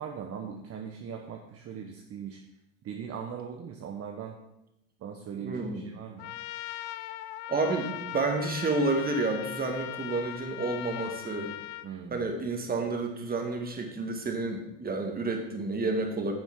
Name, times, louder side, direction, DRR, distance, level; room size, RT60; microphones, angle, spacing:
voice 1, 0.0-2.4 2.8-4.4 5.0-6.4 11.8-12.3, right 7 dB, 40° right, 3 dB, 1.0 m, -40 dB
voice 2, 5.4-5.9 7.5-11.5 12.1-16.3, right 3 dB, 25° right, 3 dB, 1.9 m, -30 dB
Trumpet, 6.2-11.9, left 15 dB, 65° left, 0.6 m, -39 dB
10.0 x 7.1 x 3.7 m, 0.87 s
hypercardioid pair, 95°, 37 cm